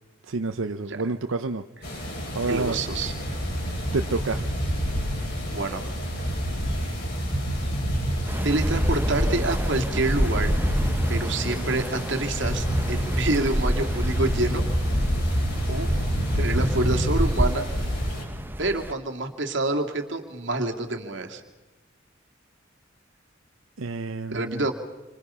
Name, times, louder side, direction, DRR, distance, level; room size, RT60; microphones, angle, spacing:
voice 1, 0.2-1.6 2.3-2.8 3.9-4.6 23.8-24.7, right 3 dB, 90° right, 7 dB, 0.8 m, -29 dB
sound 1, 1.8-18.2, equal, 55° left, 6.2 m, -27 dB
voice 2, 2.5-3.1 5.5-5.9 8.4-10.6 11.1-14.6 15.7-15.9 16.4-17.7 18.6-21.4 24.3-24.7, right 2 dB, 65° right, 3 dB, 2.3 m, -27 dB
sound 2, 8.3-18.9, equal, 10° right, 0.8 m, -30 dB
29.0 x 25.0 x 5.7 m, 1.1 s
head